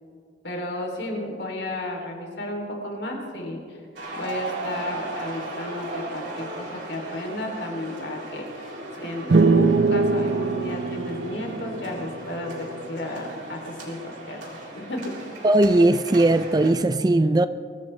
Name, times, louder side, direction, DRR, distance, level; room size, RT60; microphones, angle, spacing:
voice 1, 0.4-3.8 4.1-15.2, left 1 dB, 65° left, 3.1 m, -33 dB
sound 1, 4.0-16.7, right 2 dB, 80° right, 3.8 m, -37 dB
sound 2, 9.3-12.9, right 3 dB, 65° right, 0.6 m, -22 dB
voice 2, 15.4-17.5, right 2 dB, 20° right, 0.4 m, -18 dB
23.5 x 15.5 x 3.3 m
head